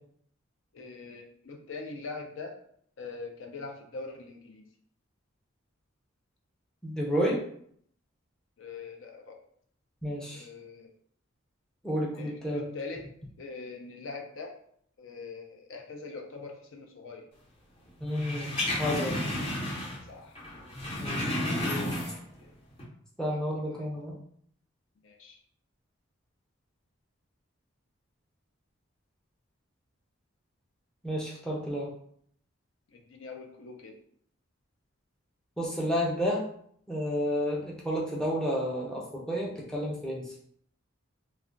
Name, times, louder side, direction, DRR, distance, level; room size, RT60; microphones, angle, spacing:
voice 1, 0.7-2.6 3.0-4.6 8.6-9.4 10.3-10.9 12.2-13.0 13.4-14.6 15.0-17.3 20.1-20.4 22.4-22.5 23.3-23.9 25.0-25.4 32.9-33.9, left 4 dB, 65° left, 2 dB, 0.5 m, -42 dB
voice 2, 6.8-7.4 10.0-10.5 11.8-12.7 18.0-19.4 21.0-21.9 23.2-24.1 31.0-31.9 35.6-36.4 36.9-40.3, equal, 5° left, -4 dB, 0.5 m, -31 dB
sound 1, 18.1-20.1 20.4-22.4 22.7-22.8, left 1 dB, 30° left, 0.8 m, -32 dB
2.3 x 2.1 x 3.7 m, 0.64 s
head